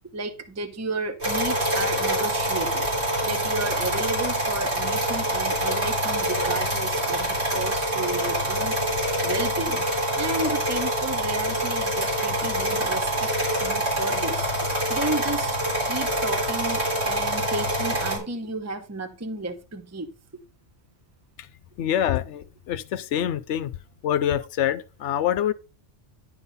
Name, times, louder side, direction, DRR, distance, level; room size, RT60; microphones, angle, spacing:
voice 1, 0.1-2.8 3.2-8.8 9.2-9.8 10.2-13.3 13.6-14.5 14.9-15.6 15.8-20.1, right 2 dB, 15° right, 0.8 m, -32 dB
sound 1, 1.2-18.2, right 1 dB, 60° right, 3.9 m, -25 dB
voice 2, 21.8-23.7 24.0-25.5, left 10 dB, 75° left, 0.9 m, -25 dB
11.0 x 4.0 x 5.5 m
omnidirectional pair, 1.2 m